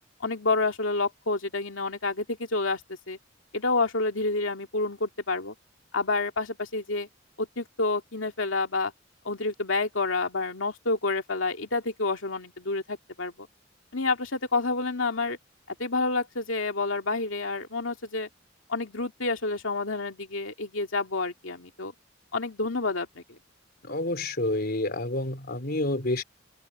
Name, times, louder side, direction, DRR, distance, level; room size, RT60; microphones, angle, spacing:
voice 1, 0.2-2.8 3.1-3.2 3.5-5.5 5.9-7.1 7.4-8.9 9.2-13.3 13.9-15.4 15.7-18.3 18.7-21.9 22.3-23.2, left 3 dB, 90° left, 2.2 m, -29 dB
voice 2, 23.9-26.2, left 2 dB, 55° left, 3.5 m, -28 dB
open air
head